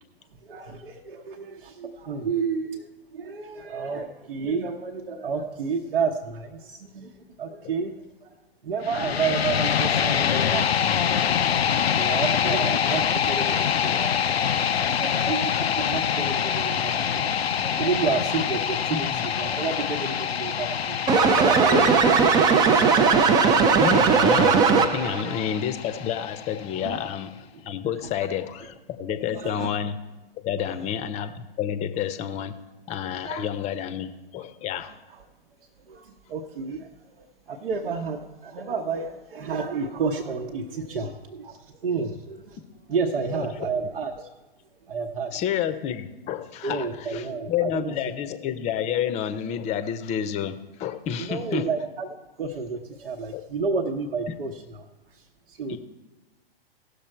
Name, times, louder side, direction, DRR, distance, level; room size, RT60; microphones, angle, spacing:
voice 1, 0.4-7.9 8.2-8.3 8.6-11.2 12.0-14.5 14.7-17.3 17.6-21.9 25.0-25.3 26.8-27.0 28.6-28.7 29.1-29.7 30.6-30.8 33.2-33.6 34.7-34.8 35.1-35.2 35.8-42.6 42.9-44.3 44.9-45.3 46.6-47.9 51.2-52.1 52.4-54.9 55.1-55.8, right 5 dB, 70° right, 1 dB, 0.9 m, -31 dB
sound 1, 8.8-26.8, left 8 dB, 85° left, 0.5 m, -26 dB
voice 2, 15.2-15.8 18.9-19.2 21.7-22.1 23.8-27.3 27.6-30.0 30.5-32.6 32.9-34.9 42.0-42.1 43.4-43.7 45.3-51.6 53.3-53.4 54.3-54.4 55.7-55.8, left 9 dB, 25° left, 11 dB, 0.7 m, -30 dB
sound 2, 21.1-25.2, right 5 dB, 15° right, 0.4 m, -18 dB
16.5 x 6.7 x 4.5 m, 1.1 s
figure-of-eight pair, 110°, 30 cm